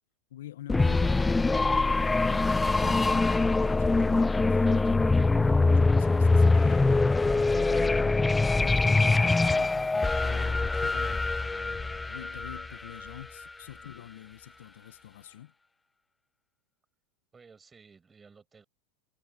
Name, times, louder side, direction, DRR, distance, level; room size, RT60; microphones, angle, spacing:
voice 1, 0.3-15.5, left 12 dB, 75° left, 1.5 m, -47 dB
sound 1, 0.7-13.4, left 3 dB, 10° left, 0.4 m, -24 dB
voice 2, 8.9-9.4 9.8-10.4 17.3-18.6, right 5 dB, 20° right, 6.6 m, -56 dB
hypercardioid pair, 105°, 0 cm